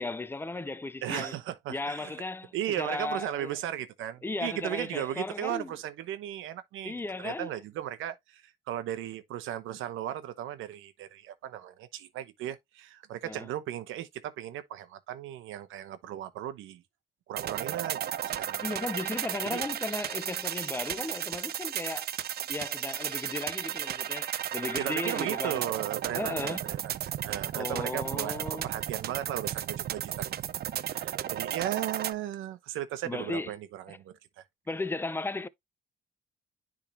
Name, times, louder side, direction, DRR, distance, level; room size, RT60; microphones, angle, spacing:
voice 1, 0.0-1.4 1.7-3.5 4.2-5.7 6.8-7.5 13.2-13.5 18.6-22.1 22.5-25.7 26.1-26.6 27.5-28.7 33.0-33.5 33.9-34.0 34.7-35.5, left 2 dB, 10° left, 0.5 m, -35 dB
voice 2, 1.0-2.1 2.5-16.8 17.3-18.7 19.5-19.6 24.8-30.4 30.9-34.4, right 12 dB, 90° right, 1.0 m, -36 dB
sound 1, 17.3-32.1, right 10 dB, 55° right, 0.5 m, -34 dB
10.0 x 3.7 x 2.8 m
cardioid pair, 90°, 20 cm